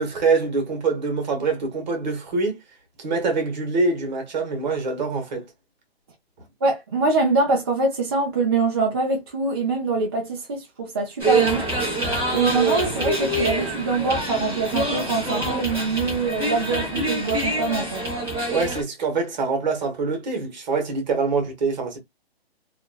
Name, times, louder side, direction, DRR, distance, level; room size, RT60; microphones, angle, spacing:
voice 1, 0.0-2.6 3.0-5.5 18.5-22.0, right 4 dB, 45° right, 1.2 m, -24 dB
voice 2, 6.6-11.6 12.3-18.0, right 3 dB, 25° right, 0.4 m, -24 dB
sound 1, 11.2-18.8, right 2 dB, 10° right, 0.8 m, -25 dB
2.8 x 2.4 x 2.3 m
hypercardioid pair, 160°, 31 cm